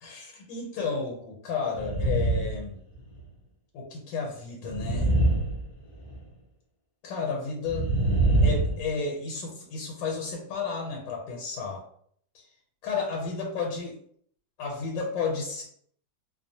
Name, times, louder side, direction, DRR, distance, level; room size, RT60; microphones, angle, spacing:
voice 1, 0.0-2.8 3.7-5.1 7.0-7.8 8.4-11.8 12.8-14.0 14.6-15.6, left 4 dB, 85° left, 0 dB, 1.3 m, -32 dB
sound 1, 1.7-2.6 2.9-3.2 4.6-6.2 7.6-8.9, right 2 dB, 55° left, 0.7 m, -24 dB
3.0 x 2.0 x 2.6 m, 0.64 s
omnidirectional pair, 2.0 m